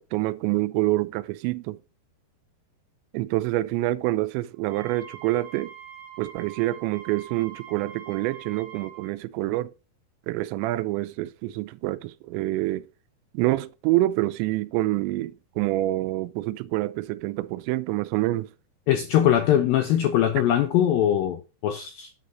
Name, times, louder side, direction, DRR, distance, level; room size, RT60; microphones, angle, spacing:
voice 1, 0.0-1.8 3.1-5.7 6.2-9.7 10.3-12.9 13.3-18.5, right 17 dB, 85° right, 2.8 m, -27 dB
Wind instrument woodwind instrument, 4.6-9.1, right 9 dB, 70° right, 2.8 m, -44 dB
voice 2, 18.9-22.1, left 11 dB, 80° left, 2.0 m, -22 dB
9.6 x 6.2 x 3.9 m
omnidirectional pair, 5.1 m